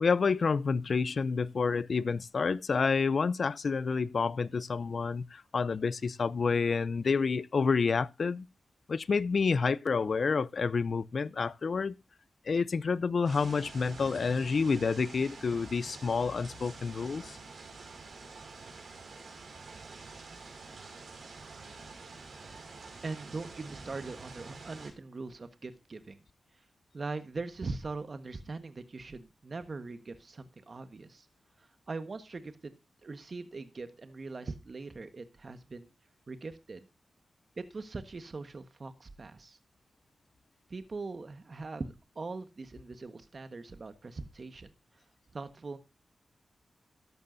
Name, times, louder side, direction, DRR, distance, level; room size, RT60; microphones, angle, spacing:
voice 1, 0.0-8.5 8.9-11.9 12.5-17.4, left 5 dB, 65° left, 0.6 m, -29 dB
sound 1, 13.2-24.9, right 4 dB, 75° right, 5.4 m, -47 dB
voice 2, 23.0-26.2 26.9-31.3 31.6-32.7 33.0-35.9 36.3-36.9 37.6-39.6 40.7-44.7 45.3-45.8, right 3 dB, 55° right, 1.4 m, -41 dB
14.0 x 11.5 x 2.7 m
cardioid pair, 45°, 0 cm